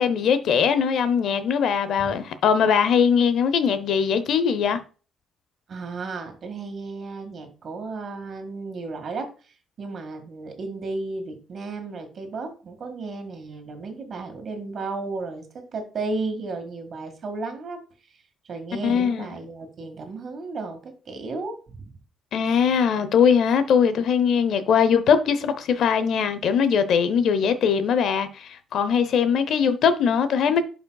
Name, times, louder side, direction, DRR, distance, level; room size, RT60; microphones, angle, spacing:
voice 1, 0.0-4.8 18.8-19.3 22.3-30.6, left 7 dB, 70° left, 0.8 m, -21 dB
voice 2, 5.7-17.8 18.1-18.2 18.4-21.8, right 3 dB, 55° right, 1.9 m, -34 dB
11.0 x 5.1 x 2.3 m
cardioid pair, 90°, 0 cm